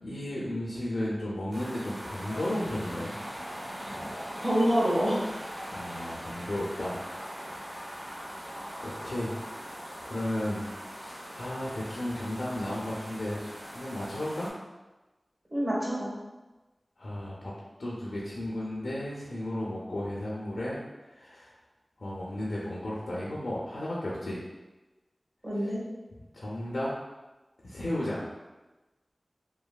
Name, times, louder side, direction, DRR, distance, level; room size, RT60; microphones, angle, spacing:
voice 1, 0.0-3.1 5.7-7.0 8.8-9.3 10.0-10.7 11.0-13.4 13.7-14.5 17.0-17.5 17.8-20.8 21.1-21.5 22.0-24.4 25.6-25.7 26.1-26.9 27.6-28.3, left 1 dB, 90° left, -6 dB, 0.4 m, -34 dB
sound 1, 1.5-14.5, equal, 70° right, 1.3 m, -41 dB
voice 2, 4.4-5.2 15.5-16.1 25.4-25.8, equal, 40° right, -6 dB, 1.1 m, -26 dB
3.0 x 2.2 x 2.3 m, 1.1 s
wide cardioid pair, 45°, 0 cm